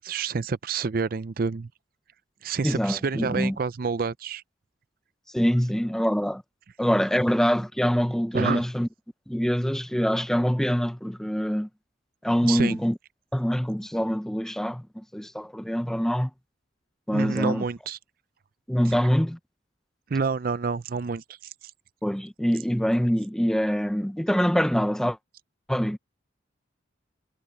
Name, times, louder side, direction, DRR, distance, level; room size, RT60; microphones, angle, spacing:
voice 1, 0.0-1.7 2.4-4.4 8.3-8.6 12.4-12.8 17.1-18.0 20.1-21.2, right 5 dB, 50° right, 0.5 m, -28 dB
voice 2, 2.6-3.6 5.3-6.4 6.8-8.9 9.3-11.7 12.2-13.0 13.3-16.3 17.1-17.6 18.7-19.4 22.0-25.2 25.7-26.0, equal, 5° left, 0.5 m, -24 dB
head